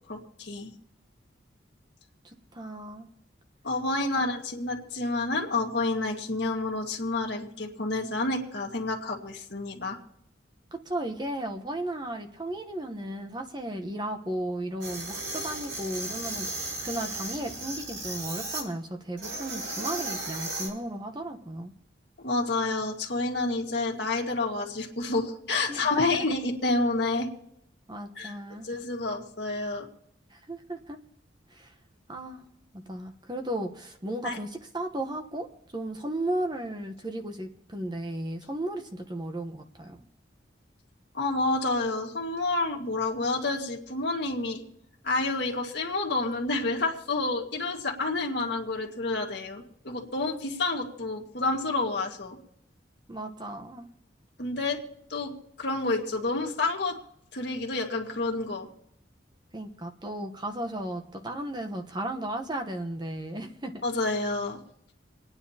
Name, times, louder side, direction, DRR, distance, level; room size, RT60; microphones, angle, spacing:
voice 1, 0.1-0.7 3.6-10.0 22.2-27.3 28.2-28.3 28.6-29.9 34.2-34.4 41.1-44.6 45.0-52.4 54.4-54.8 55.1-55.3 55.6-57.0 57.3-58.7 63.8-64.6, left 2 dB, 65° left, 1 dB, 1.8 m, -29 dB
voice 2, 2.2-3.1 10.7-21.7 25.7-26.2 27.9-28.7 30.3-31.0 31.5-31.7 32.1-32.4 32.7-35.5 35.7-40.0 53.1-53.9 59.5-63.7, right 1 dB, 25° right, 5 dB, 1.0 m, -35 dB
sound 1, 14.8-18.6 19.2-20.7, right 2 dB, 80° right, 5.8 m, -35 dB
27.5 x 9.7 x 2.9 m, 0.75 s
head